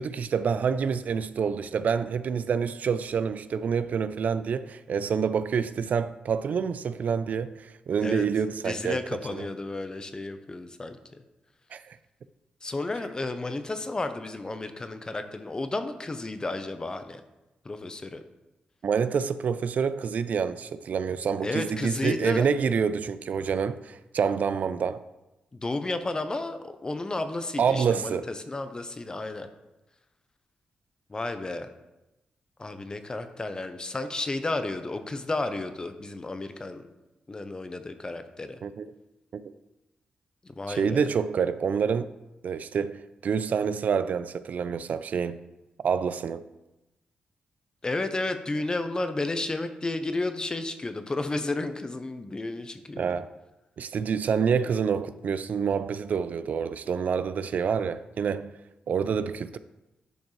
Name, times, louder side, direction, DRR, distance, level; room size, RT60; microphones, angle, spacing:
voice 1, 0.0-9.0 9.3-9.5 11.7-12.0 18.8-25.0 27.6-28.3 38.6-38.9 39.3-39.5 40.7-42.1 42.4-45.4 45.8-46.5 53.0-53.3 53.8-58.5 58.9-59.6, right 6 dB, 65° right, 0.3 m, -27 dB
voice 2, 8.6-11.2 12.6-17.2 17.6-18.2 21.4-22.5 25.5-29.5 31.1-31.7 32.6-36.9 37.3-38.6 40.4-41.0 47.8-53.1, left 2 dB, 25° left, 0.7 m, -32 dB
10.5 x 5.2 x 3.2 m
cardioid pair, 85°, 3 cm